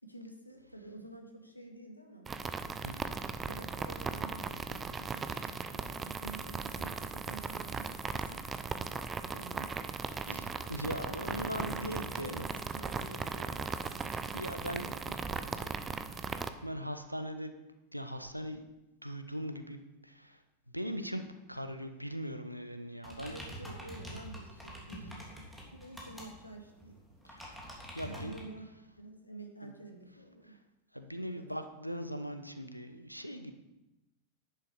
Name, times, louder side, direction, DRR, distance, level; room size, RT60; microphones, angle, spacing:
voice 1, 0.0-2.3 2.9-3.1 3.5-8.4 9.3-10.6 11.2-11.3 11.6-13.8 14.7-15.8 23.3-27.0 28.0-30.6 31.2-31.5, right 2 dB, 85° left, 2 dB, 1.9 m, -49 dB
sound 1, 2.3-16.5, right 5 dB, 20° right, 0.7 m, -38 dB
voice 2, 10.7-12.4 13.9-14.8 16.1-17.5 17.9-18.6 19.0-20.4 20.7-21.2 21.5-23.4 27.2-27.6 27.9-28.4 29.6-29.7 30.5-30.6 30.9-33.5, equal, 90° right, 8 dB, 1.0 m, -40 dB
sound 2, 23.0-28.4, right 1 dB, ahead, 3.1 m, -46 dB
11.0 x 10.5 x 4.8 m, 1.0 s
figure-of-eight pair, 90°, 0 cm